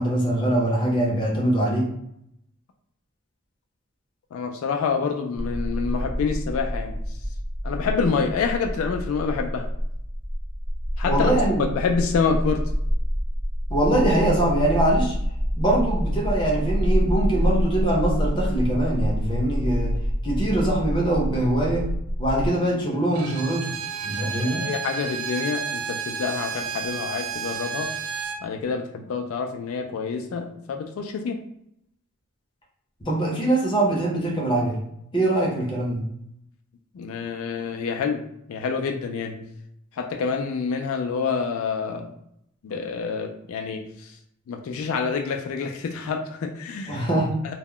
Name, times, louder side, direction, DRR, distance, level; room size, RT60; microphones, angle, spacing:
voice 1, 0.0-1.9 11.0-11.7 13.7-15.1 15.6-19.9 20.2-21.9 22.2-23.8 24.0-24.6 33.0-34.8 35.1-36.0 46.9-47.4, right 1 dB, 20° left, -2 dB, 0.6 m, -23 dB
voice 2, 4.3-7.0 7.6-9.7 11.0-11.3 11.6-12.7 24.2-27.9 28.4-31.4 36.9-38.2 38.5-39.5 40.0-42.1 42.6-44.1 44.5-47.0, left 5 dB, 75° left, 4 dB, 0.3 m, -27 dB
sound 1, 5.4-22.5, equal, 25° right, 0.8 m, -27 dB
Bowed string instrument, 23.1-28.4, right 6 dB, 80° right, 0.3 m, -31 dB
2.2 x 2.0 x 3.6 m, 0.75 s
head